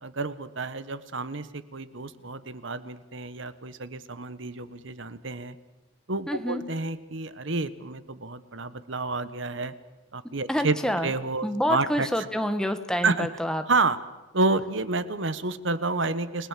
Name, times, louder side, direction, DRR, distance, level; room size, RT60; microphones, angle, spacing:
voice 1, 0.0-5.6 6.1-9.7 10.1-10.8 11.0-12.1 13.0-13.3 13.7-14.0 14.3-16.5, right 3 dB, 60° right, 13 dB, 1.2 m, -29 dB
voice 2, 6.3-6.6 10.5-11.1 11.4-13.6, equal, 5° left, 8 dB, 1.4 m, -27 dB
29.5 x 20.0 x 7.5 m, 1.1 s
head